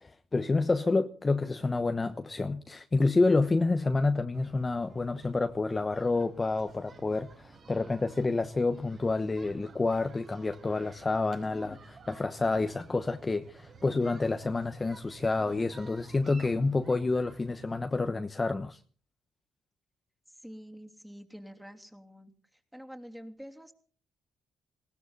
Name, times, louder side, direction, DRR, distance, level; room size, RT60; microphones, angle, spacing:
voice 1, 0.0-18.8, left 3 dB, 25° left, 1.1 m, -28 dB
sound 1, 4.3-17.8, right 4 dB, 50° right, 5.4 m, -53 dB
voice 2, 20.4-22.3 22.7-23.7, equal, 5° right, 3.1 m, -47 dB
20.5 x 17.0 x 4.0 m
cardioid pair, 90°, 0 cm